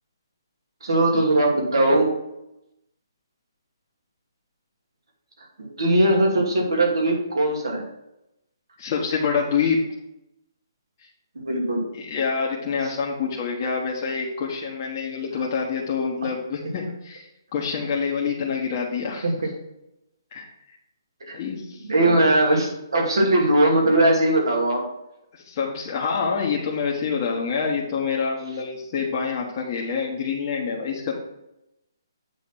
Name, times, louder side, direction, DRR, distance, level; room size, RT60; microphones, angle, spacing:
voice 1, 0.8-2.1 5.6-7.9 11.4-11.9 19.2-19.3 21.3-21.4 21.9-24.8, right 1 dB, 80° right, 0 dB, 2.6 m, -20 dB
voice 2, 8.8-9.8 11.9-17.3 17.5-19.3 20.3-20.5 21.3-22.2 25.3-31.2, left 5 dB, 35° left, -3 dB, 1.3 m, -26 dB
8.0 x 4.2 x 5.9 m, 0.86 s
hypercardioid pair, 150°, 2 cm